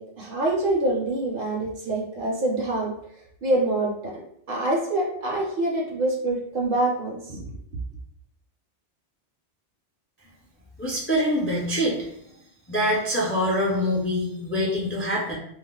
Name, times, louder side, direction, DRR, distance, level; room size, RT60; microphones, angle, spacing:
voice 1, 0.0-2.9 3.4-7.6, right 2 dB, 60° right, -1 dB, 0.7 m, -26 dB
voice 2, 10.8-12.0 12.7-15.3, equal, 20° left, -4 dB, 0.3 m, -24 dB
2.3 x 2.0 x 3.6 m, 0.73 s
omnidirectional pair, 1.2 m